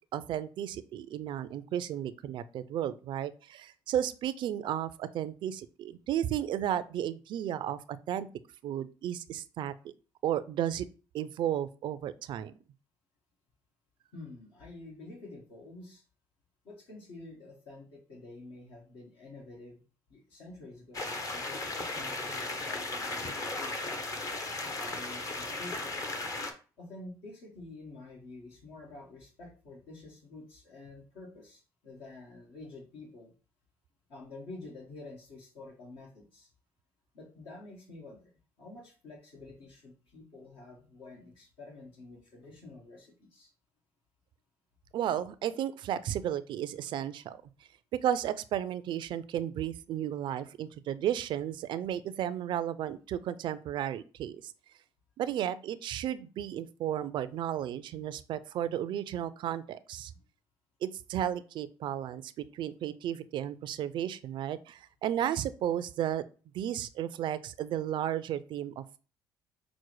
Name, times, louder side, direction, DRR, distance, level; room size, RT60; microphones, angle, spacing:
voice 1, 0.1-8.3 8.6-9.9 10.2-10.9 11.1-12.5 44.9-47.4 47.9-54.5 55.2-60.1 60.8-66.2 66.5-69.0, right 10 dB, 60° right, 14 dB, 0.4 m, -33 dB
voice 2, 14.1-16.0 16.6-19.8 20.1-24.1 24.8-26.2 26.8-33.3 34.1-36.5 37.1-43.5 60.1-60.2, left 2 dB, 75° left, -1 dB, 1.2 m, -49 dB
sound 1, 20.9-26.5, left 2 dB, 40° left, 0.7 m, -36 dB
6.0 x 2.1 x 3.1 m, 0.37 s
supercardioid pair, 70°, 9 cm